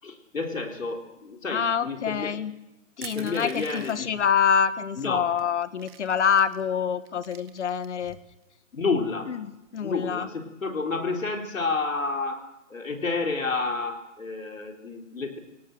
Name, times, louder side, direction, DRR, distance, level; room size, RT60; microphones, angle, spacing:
voice 1, 0.0-2.3 3.0-4.1 5.0-5.3 8.7-9.3 9.8-15.4, left 4 dB, 85° left, 3 dB, 4.2 m, -30 dB
voice 2, 1.5-2.5 3.0-8.2 9.3-10.3, left 7 dB, 65° left, 14 dB, 1.5 m, -26 dB
Crushing, 3.0-4.2 5.0-5.1 5.4-6.6 7.0-8.1, right 9 dB, 50° right, 2.0 m, -45 dB
24.0 x 17.5 x 7.8 m, 0.96 s
hypercardioid pair, 145°, 38 cm